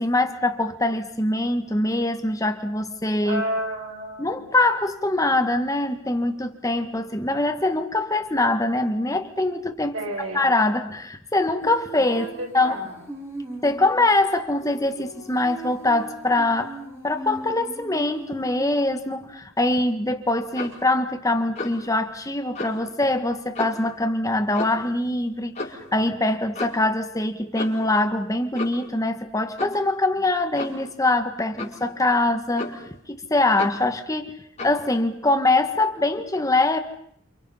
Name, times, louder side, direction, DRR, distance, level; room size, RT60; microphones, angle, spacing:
voice 1, 0.0-3.4 4.2-9.9 10.3-12.2 12.5-12.8 13.6-16.8 17.0-32.8 33.1-34.3 34.6-36.8, left 2 dB, 15° left, 6 dB, 1.6 m, -23 dB
voice 2, 3.2-4.5 9.9-10.5 12.0-13.1, right 1 dB, 80° right, 0 dB, 7.6 m, -31 dB
Female singing, 11.6-19.3, right 2 dB, 15° right, 6.2 m, -39 dB
Clock, 20.5-20.8 21.6-21.9 22.5-22.8 23.5-23.9 24.5-24.9 25.5-25.8 26.5-26.9 27.5-27.9 28.5-28.9 29.6-29.8 30.5-30.8 31.6-31.8 32.6-32.9 33.6-33.8 34.6-34.8, left 2 dB, 30° left, 5.9 m, -33 dB
29.5 x 28.0 x 5.7 m, 0.71 s
head